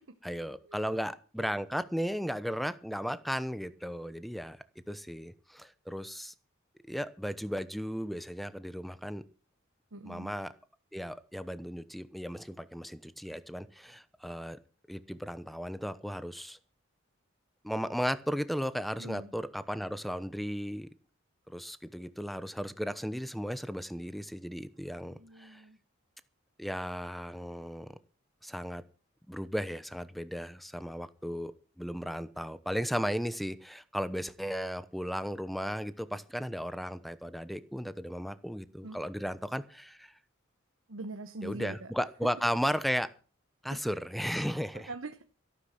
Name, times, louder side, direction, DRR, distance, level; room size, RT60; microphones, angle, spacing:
voice 1, 0.2-4.6 4.9-6.3 6.9-9.2 10.0-10.5 10.9-14.6 14.9-16.6 17.6-20.9 21.5-25.6 26.6-27.9 28.4-28.8 29.3-40.1 41.4-43.1 43.6-44.9, equal, ahead, 0.9 m, -35 dB
voice 2, 9.9-10.3 19.0-19.3 25.0-25.8 38.8-39.0 40.9-41.9 43.7-43.8 44.7-45.2, right 2 dB, 80° right, 1.1 m, -43 dB
14.0 x 12.0 x 5.9 m
head